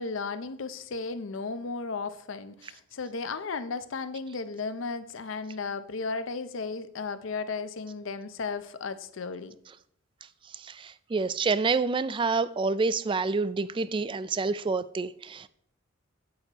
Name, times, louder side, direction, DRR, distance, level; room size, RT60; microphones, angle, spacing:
voice 1, 0.0-9.6, left 4 dB, 70° left, 0.6 m, -35 dB
voice 2, 10.5-15.5, right 4 dB, 25° right, 0.3 m, -28 dB
8.7 x 8.4 x 2.9 m
head